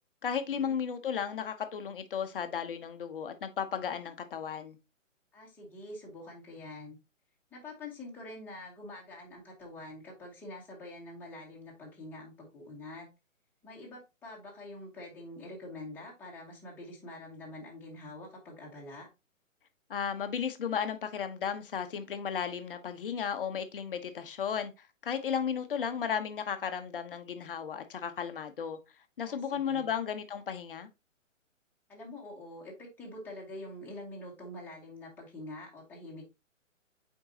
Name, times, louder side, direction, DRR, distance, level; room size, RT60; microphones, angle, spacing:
voice 1, 0.2-4.8 19.9-28.8 29.2-30.9, left 7 dB, 45° left, 0.9 m, -34 dB
voice 2, 5.3-7.0 7.5-13.1 13.6-19.1 29.2-29.9 31.9-36.3, left 1 dB, 5° left, 1.5 m, -46 dB
7.8 x 4.5 x 2.8 m
figure-of-eight pair, 130°, 39 cm